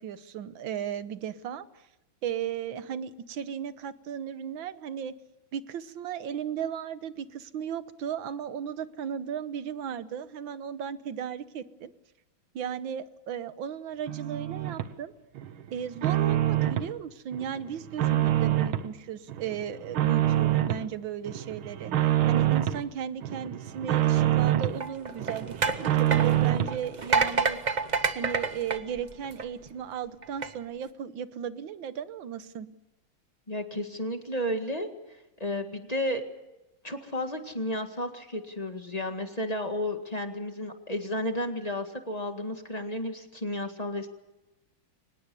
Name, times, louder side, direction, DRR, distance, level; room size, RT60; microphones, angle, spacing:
voice 1, 0.0-1.7 2.2-5.2 5.5-11.9 12.6-15.1 15.7-27.6 28.2-32.7, right 8 dB, 70° right, 13 dB, 1.7 m, -35 dB
sound 1, 14.1-14.9 15.4-16.9 17.3-18.9 19.3-20.9 21.3-22.8 23.2-24.8 25.2-26.8, right 12 dB, 85° right, 1.9 m, -26 dB
sound 2, 24.7-29.7 30.2-30.5, right 4 dB, 40° right, 0.6 m, -29 dB
voice 2, 33.5-34.9 35.4-36.2 36.8-44.1, left 1 dB, 20° left, 6 dB, 1.8 m, -32 dB
24.5 x 19.5 x 6.9 m, 1.0 s
omnidirectional pair, 2.2 m